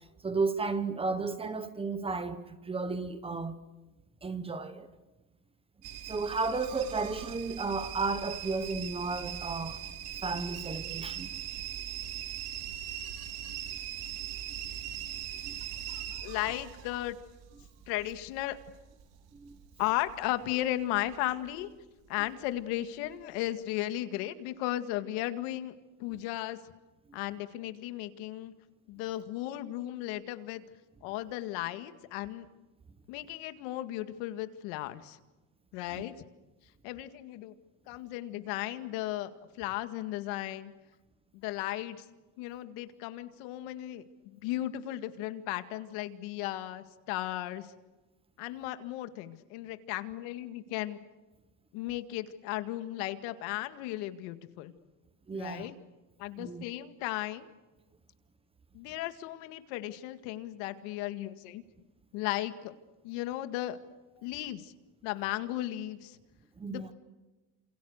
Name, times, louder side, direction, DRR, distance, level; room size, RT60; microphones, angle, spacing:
voice 1, 0.2-3.6 4.2-4.9 6.1-9.8 10.2-11.3 15.4-15.6 19.3-19.5 35.9-36.0 55.3-55.7 56.4-56.6 66.6-66.9, right 4 dB, 15° right, 1.1 m, -33 dB
sound 1, 5.8-20.7 21.0-21.6 22.1-22.6 23.1-23.2, right 11 dB, 60° right, 3.3 m, -41 dB
voice 2, 15.9-17.2 17.9-18.6 19.8-21.7 22.1-25.7 26.0-26.6 27.1-28.5 28.9-30.6 31.0-32.5 33.1-35.2 35.7-36.3 36.8-37.5 37.9-40.7 41.3-42.1 42.4-47.7 48.4-51.0 51.7-54.7 55.3-55.8 56.2-57.5 58.7-61.6 62.1-62.7 63.0-63.8 64.2-64.7 65.0-66.2 66.7-66.9, left 15 dB, 75° left, 2.0 m, -35 dB
29.0 x 27.5 x 6.6 m
cardioid pair, 160°, 42 cm